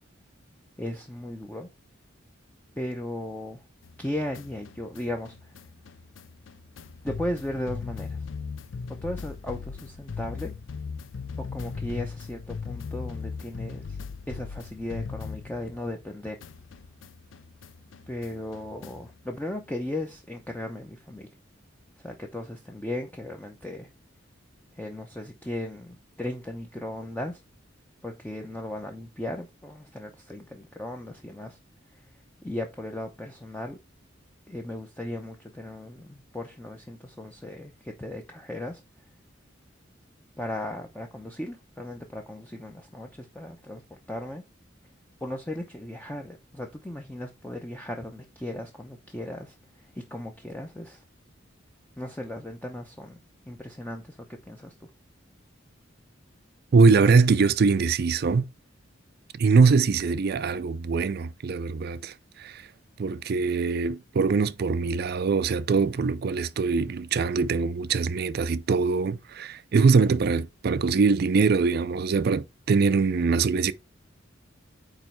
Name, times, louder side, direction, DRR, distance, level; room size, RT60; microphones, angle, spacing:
voice 1, 0.8-1.7 2.8-3.6 4.0-5.6 7.0-8.3 8.9-10.5 11.4-14.0 14.3-16.4 18.1-21.3 22.0-23.9 24.7-27.4 28.0-31.6 31.9-33.8 34.5-38.8 40.4-44.4 45.2-51.0 52.0-53.2 53.5-54.9, left 1 dB, 10° left, 0.6 m, -36 dB
sound 1, 3.8-16.1 16.4-19.2, left 5 dB, 75° left, 0.5 m, -39 dB
voice 2, 56.7-58.5 59.3-62.7 63.0-73.7, right 4 dB, 55° right, 0.4 m, -23 dB
8.8 x 3.1 x 4.5 m
head